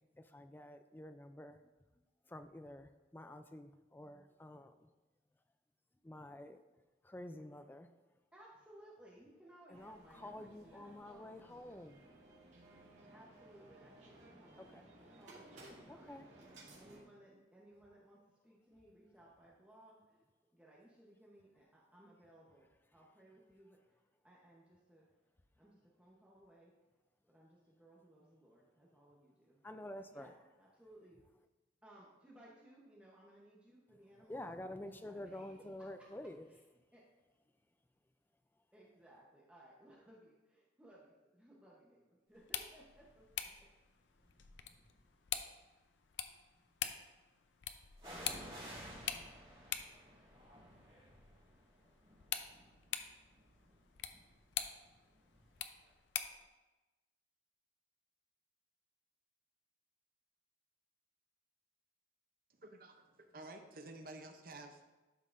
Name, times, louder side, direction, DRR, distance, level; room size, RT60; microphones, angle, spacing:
voice 1, 0.0-1.6 2.3-4.9 6.0-6.6 7.0-7.9 9.7-12.0 14.7-14.8 15.9-16.3 29.6-30.3 34.3-36.4, left 1 dB, 10° left, 8 dB, 0.3 m, -49 dB
voice 2, 8.3-11.9 13.1-16.2 16.8-20.2 20.5-25.3 25.6-26.8 27.3-31.3 31.8-34.4 34.8-36.1 36.5-36.6 36.9-37.1 38.7-43.7, right 1 dB, 5° right, -5 dB, 0.9 m, -62 dB
sound 1, 9.7-17.0, right 1 dB, 75° right, 2.2 m, -59 dB
sound 2, 42.3-56.5, left 9 dB, 70° left, 0.5 m, -46 dB
sound 3, 43.0-43.4 44.1-45.1 48.0-55.6 55.9-56.0, equal, 30° right, 2.3 m, -54 dB
voice 3, 62.6-64.8, right 2 dB, 45° right, 5 dB, 0.6 m, -52 dB
12.0 x 5.5 x 2.5 m, 1.1 s
head